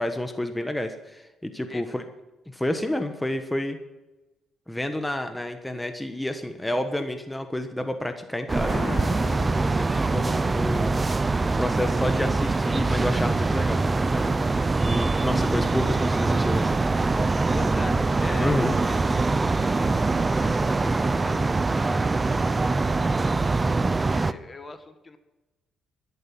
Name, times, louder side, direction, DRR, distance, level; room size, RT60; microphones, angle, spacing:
voice 1, 0.0-2.0 2.5-3.8 4.7-9.0 9.6-11.0 11.4-14.4 14.8-16.7 18.4-18.7, left 1 dB, 10° left, 7 dB, 1.3 m, -29 dB
sound 1, 8.5-24.3, right 3 dB, 25° right, 0.7 m, -23 dB
Explosion, 8.6-10.4, left 7 dB, 65° left, 0.9 m, -38 dB
voice 2, 17.5-19.0 19.5-20.4 20.7-25.2, left 3 dB, 25° left, 9 dB, 1.4 m, -41 dB
12.5 x 11.0 x 6.0 m, 1.1 s
cardioid pair, 90°, 0 cm